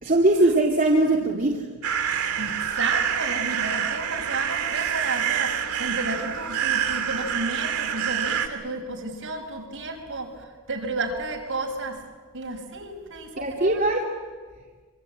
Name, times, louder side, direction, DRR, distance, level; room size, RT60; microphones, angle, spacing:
voice 1, 0.0-1.7 13.4-14.1, right 2 dB, 40° right, 0 dB, 2.4 m, -21 dB
sound 1, 1.8-8.5, right 8 dB, 85° right, 2.8 m, -27 dB
voice 2, 2.4-12.0 12.3-13.9, right 3 dB, 60° right, 2 dB, 5.6 m, -32 dB
25.5 x 25.0 x 8.6 m, 1.5 s
head